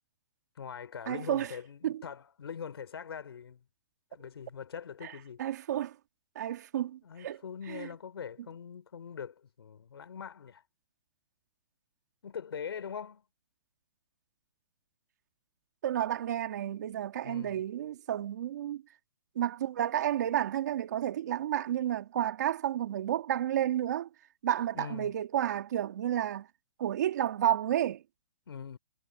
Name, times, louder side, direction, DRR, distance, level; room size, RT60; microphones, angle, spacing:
voice 1, 0.6-3.6 4.1-5.4 7.0-10.6 12.2-13.2 17.2-17.6 24.7-25.1 28.5-28.8, left 7 dB, 80° left, 3.9 m, -42 dB
voice 2, 1.1-1.5 1.8-2.0 5.0-5.1 5.4-6.0 6.3-7.4 7.7-7.9 15.8-18.8 19.3-24.1 24.4-26.5 26.8-28.0, right 11 dB, 45° right, 2.5 m, -31 dB
hypercardioid pair, 175°, 13 cm